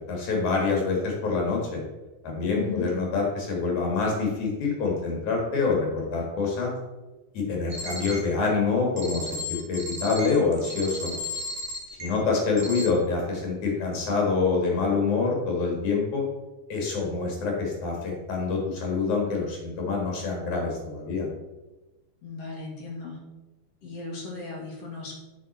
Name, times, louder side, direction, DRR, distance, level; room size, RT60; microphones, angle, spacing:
voice 1, 0.1-1.8 2.2-6.7 7.3-11.1 12.0-16.3 16.7-21.3, left 4 dB, 75° left, 0 dB, 3.3 m, -26 dB
voice 2, 2.6-2.9 12.0-12.3 22.2-23.2 23.8-25.2, left 4 dB, 55° left, -2 dB, 2.6 m, -36 dB
sound 1, 7.7-8.2 9.0-12.1 12.6-12.9, left 2 dB, 65° right, 0.7 m, -34 dB
7.5 x 5.9 x 4.2 m, 1.1 s
omnidirectional pair, 3.4 m